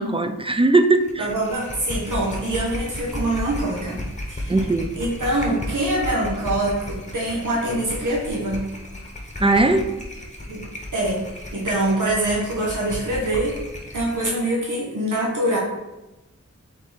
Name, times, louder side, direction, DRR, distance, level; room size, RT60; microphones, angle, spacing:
voice 1, 0.0-1.3 4.5-4.9 9.4-9.9, right 2 dB, 20° right, 8 dB, 0.3 m, -19 dB
sound 1, 1.0-14.4, left 1 dB, 25° left, 0.8 m, -34 dB
voice 2, 1.2-4.6 5.0-8.7 10.5-10.7 10.9-11.2 11.5-13.6 13.9-15.6, right 1 dB, 80° right, -5 dB, 1.0 m, -24 dB
4.0 x 3.7 x 3.4 m, 1.0 s
wide cardioid pair, 45°, 30 cm